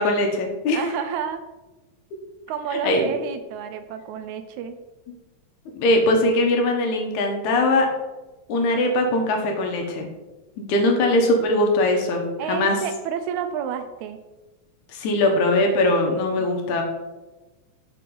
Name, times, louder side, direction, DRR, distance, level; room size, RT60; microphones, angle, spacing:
voice 1, 0.0-0.8 2.8-3.1 5.7-7.9 8.5-10.1 10.6-12.8 14.9-16.8, left 2 dB, 75° left, 2 dB, 2.3 m, -21 dB
voice 2, 0.7-1.4 2.5-4.8 12.4-14.2, right 8 dB, 80° right, 9 dB, 1.9 m, -30 dB
6.1 x 6.0 x 3.8 m, 1.1 s
omnidirectional pair, 3.5 m